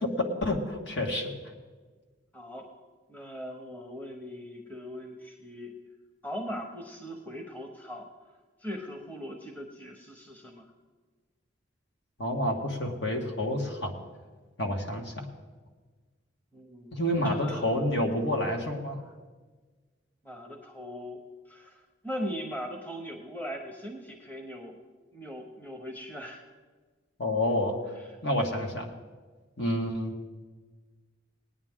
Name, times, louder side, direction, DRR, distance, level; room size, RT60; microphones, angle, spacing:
voice 1, 0.0-1.3 12.2-13.9 14.6-15.3 16.9-19.0 27.2-27.8 28.2-28.9 29.6-30.1, left 1 dB, 60° left, 2 dB, 1.7 m, -29 dB
voice 2, 2.3-2.7 3.1-5.7 6.2-8.1 8.6-10.7 16.5-17.6 20.2-24.8 25.1-26.4, equal, 10° left, 2 dB, 1.0 m, -40 dB
19.0 x 9.8 x 3.7 m, 1.4 s
head